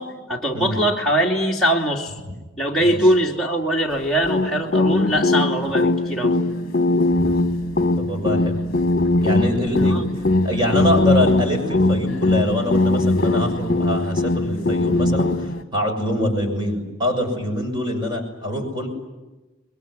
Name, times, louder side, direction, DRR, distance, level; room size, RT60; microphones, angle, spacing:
voice 1, 0.0-2.1 2.6-6.4 9.7-10.1, right 1 dB, ahead, -5 dB, 2.8 m, -22 dB
voice 2, 0.5-0.8 2.2-2.3 2.8-3.1 8.0-8.6 9.2-18.9, left 1 dB, 20° right, 3 dB, 6.7 m, -25 dB
sound 1, 4.2-15.6, left 2 dB, 45° left, 1.6 m, -20 dB
27.5 x 22.0 x 9.8 m, 1.1 s
head